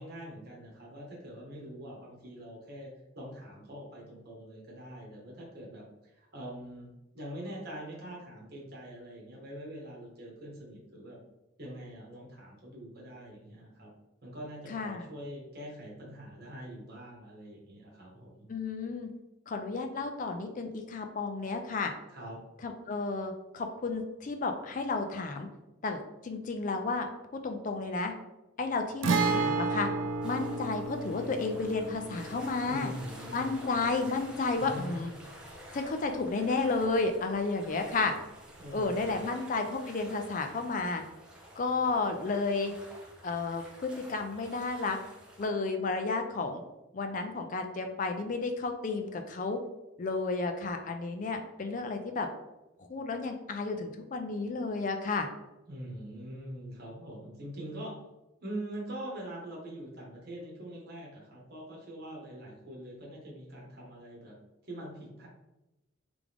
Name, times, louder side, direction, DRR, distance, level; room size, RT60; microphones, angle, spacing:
voice 1, 0.0-11.2 11.6-13.9 14.2-18.5 22.1-22.4 32.6-34.1 34.6-34.8 38.6-39.3 55.7-57.9 58.4-64.3 64.6-65.3, right 1 dB, 50° right, -2 dB, 1.3 m, -44 dB
voice 2, 14.7-15.1 18.5-19.1 19.5-21.9 22.6-25.5 25.8-27.1 27.4-28.1 28.6-29.9 30.2-32.9 33.3-35.1 35.7-38.1 38.7-41.0 41.6-42.7 43.2-45.0 45.4-46.6 46.9-49.6 50.0-52.3 52.8-55.3, left 3 dB, 40° left, 5 dB, 0.4 m, -32 dB
Guitar, 29.0-36.6 36.9-37.0 39.0-39.2, right 3 dB, 70° right, 0.4 m, -33 dB
sound 1, 30.2-45.5, right 1 dB, 5° right, 0.6 m, -50 dB
3.6 x 3.4 x 3.5 m, 0.96 s
head